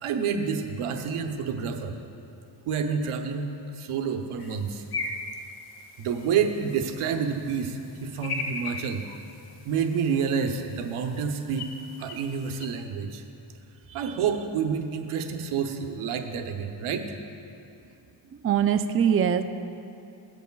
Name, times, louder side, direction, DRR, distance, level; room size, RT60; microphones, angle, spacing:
voice 1, 0.0-2.0 2.6-4.8 6.0-9.0 9.6-11.7 12.0-13.2 13.9-17.1, right 6 dB, 80° right, 5 dB, 1.0 m, -28 dB
sound 1, 4.4-12.7, left 3 dB, 50° left, 1.1 m, -39 dB
voice 2, 18.4-19.4, right 8 dB, 30° right, 8 dB, 0.4 m, -22 dB
19.0 x 8.1 x 2.3 m, 2.7 s
cardioid pair, 75°, 50 cm